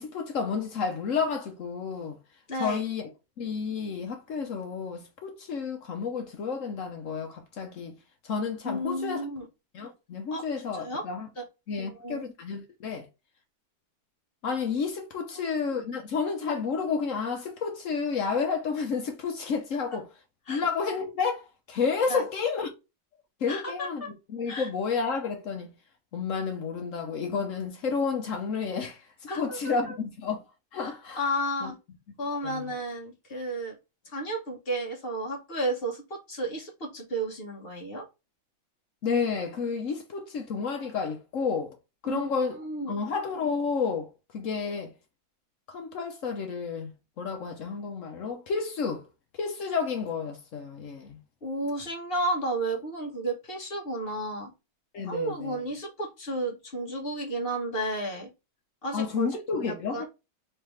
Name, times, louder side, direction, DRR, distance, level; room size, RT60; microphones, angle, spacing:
voice 1, 0.0-2.2 2.6-3.0 3.4-8.0 8.2-9.2 9.7-11.3 11.7-13.1 14.4-20.1 20.5-22.7 23.4-25.7 26.1-29.0 29.3-30.4 30.7-31.2 31.6-31.7 32.4-32.7 39.0-41.7 42.0-42.6 42.9-44.9 45.7-46.9 47.2-49.0 49.4-51.2 54.9-55.6 58.9-60.0, left 5 dB, 65° left, 0.8 m, -31 dB
voice 2, 2.5-2.8 8.6-9.5 10.3-10.4 10.7-11.0 11.4-11.5 11.8-12.2 15.2-15.5 20.5-20.6 22.1-22.2 23.5-24.1 24.5-24.7 29.3-30.0 30.8-30.9 31.2-31.8 32.2-33.8 34.0-38.0 42.0-42.2 42.5-43.0 51.4-54.5 55.1-58.3 58.8-60.1, right 1 dB, 40° left, 1.0 m, -32 dB
3.5 x 3.2 x 3.0 m
omnidirectional pair, 2.2 m